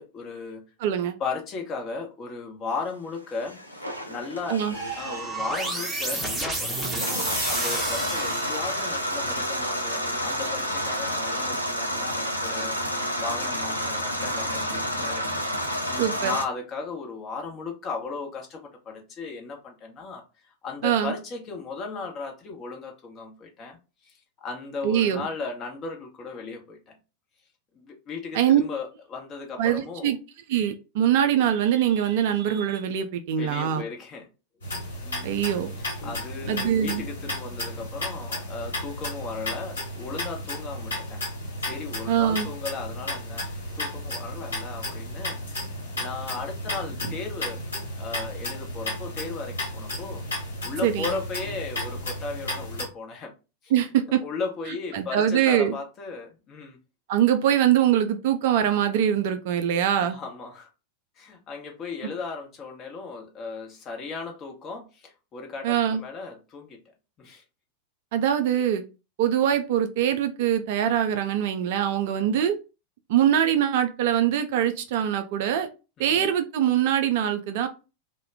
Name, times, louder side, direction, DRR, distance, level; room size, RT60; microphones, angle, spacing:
voice 1, 0.0-0.6 1.2-4.6 5.0-7.1 7.4-20.2 20.6-26.9 27.7-30.1 33.4-34.3 35.0-35.3 36.0-41.2 41.6-43.5 43.8-45.4 45.9-47.6 48.0-53.3 53.6-53.7 54.2-56.8 60.0-60.7 61.2-66.8 67.2-67.4 76.0-76.3, left 4 dB, 30° left, 0.8 m, -36 dB
voice 2, 0.8-1.2 4.5-4.7 16.0-16.3 20.8-21.1 24.8-25.3 28.3-28.6 29.6-30.2 30.5-33.8 35.2-35.7 36.5-37.0 42.1-42.5 50.8-51.1 53.7-54.2 54.7-55.7 57.1-60.2 65.6-66.0 68.1-68.8 69.2-72.5 73.1-75.7 76.0-77.7, right 10 dB, 50° right, 0.4 m, -23 dB
sound 1, 3.4-16.4, equal, 85° left, 0.4 m, -30 dB
sound 2, 4.7-9.0, right 2 dB, 15° right, 0.7 m, -30 dB
sound 3, 34.6-52.9, left 1 dB, 70° left, 1.3 m, -33 dB
2.2 x 2.2 x 3.4 m
figure-of-eight pair, 90°, 0 cm